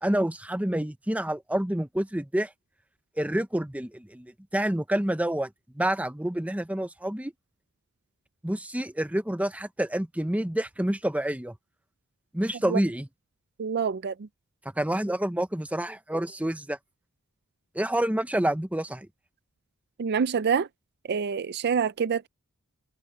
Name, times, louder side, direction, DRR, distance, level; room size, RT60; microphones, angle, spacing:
voice 1, 0.0-2.5 3.2-5.5 5.7-7.3 8.4-11.6 12.3-13.1 14.8-16.8 17.7-19.1, right 1 dB, 5° right, 0.8 m, -28 dB
voice 2, 13.6-14.3 20.0-20.7 21.1-22.3, right 6 dB, 50° right, 0.4 m, -26 dB
head